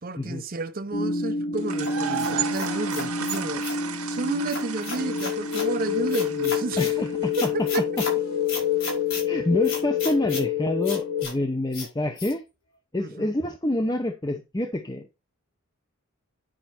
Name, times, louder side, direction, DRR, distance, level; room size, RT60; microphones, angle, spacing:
voice 1, 0.0-6.8 7.7-7.8 9.1-9.2 13.0-13.3, right 3 dB, 40° right, 0.7 m, -31 dB
sound 1, 0.9-11.3, left 6 dB, 90° left, 3.9 m, -28 dB
sound 2, 1.6-7.6, right 8 dB, 90° right, 1.7 m, -34 dB
sound 3, 1.8-3.8 4.5-5.7 6.1-6.9 7.3-8.1 8.5-9.2 9.6-10.5 10.8-11.3 11.7-11.9 12.2-12.3, left 3 dB, 60° left, 5.2 m, -34 dB
voice 2, 6.8-8.1 9.2-12.4 12.9-15.1, left 1 dB, 20° left, 0.7 m, -27 dB
10.0 x 5.6 x 4.4 m
head